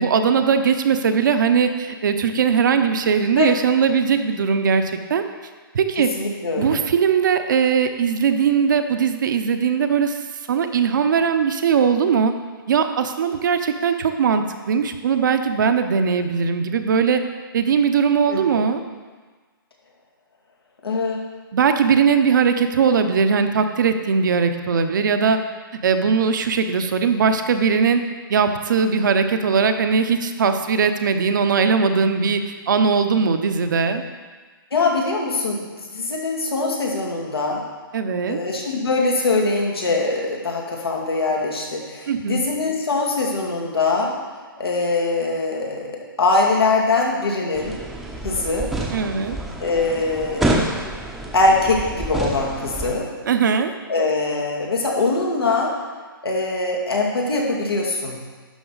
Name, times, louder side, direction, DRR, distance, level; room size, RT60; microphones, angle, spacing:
voice 1, 0.0-4.8 5.1-5.2 5.7-6.1 6.6-10.2 10.5-12.3 12.7-17.2 17.5-18.8 21.5-25.4 25.8-28.0 28.3-32.4 32.7-34.0 37.9-38.4 42.1-42.4 48.9-49.4 53.3-53.7, right 6 dB, 55° right, 7 dB, 0.8 m, -19 dB
voice 2, 6.0-6.8 18.3-18.7 20.8-21.2 34.7-37.6 38.3-44.1 44.6-47.8 48.2-48.7 49.6-50.7 51.3-53.1 53.9-55.7 56.2-58.2, left 3 dB, 90° left, -2 dB, 2.2 m, -22 dB
sound 1, 47.6-52.9, right 1 dB, ahead, 0.7 m, -28 dB
11.0 x 6.0 x 4.0 m, 1.4 s
hypercardioid pair, 150°, 12 cm